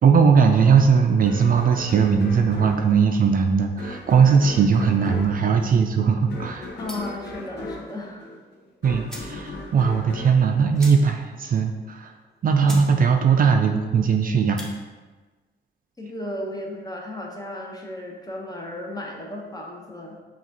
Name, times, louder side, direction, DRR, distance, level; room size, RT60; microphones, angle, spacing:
voice 1, 0.0-6.7 8.8-12.1 12.4-14.6, right 6 dB, 50° right, 4 dB, 0.4 m, -19 dB
sound 1, 1.3-11.5, left 2 dB, 65° left, 0.7 m, -38 dB
voice 2, 6.8-8.3 16.0-20.2, left 1 dB, 20° left, -1 dB, 0.9 m, -34 dB
sound 2, 6.8-7.2 8.6-8.7 9.0-9.4 9.8-9.9 10.1-10.2 10.7-11.3 11.7-11.8 12.3-12.4 12.6-12.9 13.3-13.6 14.4-14.7, equal, 5° left, 1.1 m, -40 dB
5.7 x 2.4 x 2.8 m, 1.3 s
cardioid pair, 70°, 19 cm